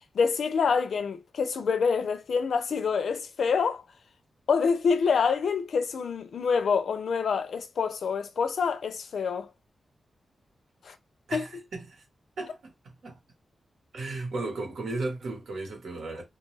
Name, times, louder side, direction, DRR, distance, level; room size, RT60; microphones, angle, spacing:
voice 1, 0.1-3.8 4.5-9.5 10.8-11.0 11.3-11.4, left 5 dB, 75° left, 0.4 m, -26 dB
voice 2, 11.3-12.0 12.4-13.2 13.9-16.2, right 2 dB, 80° right, 1.1 m, -35 dB
2.3 x 2.2 x 3.1 m
wide cardioid pair, 105°, 0 cm